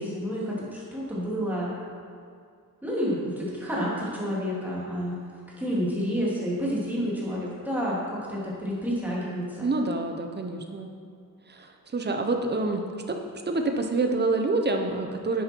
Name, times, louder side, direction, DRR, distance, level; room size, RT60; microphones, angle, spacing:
voice 1, 0.0-1.7 2.8-5.2 5.6-9.7, equal, 5° right, -7 dB, 3.0 m, -29 dB
voice 2, 9.6-10.9 11.5-13.2 13.5-15.4, right 3 dB, 30° right, 4 dB, 1.0 m, -27 dB
10.0 x 8.9 x 4.6 m, 2.2 s
wide cardioid pair, 145°, 35 cm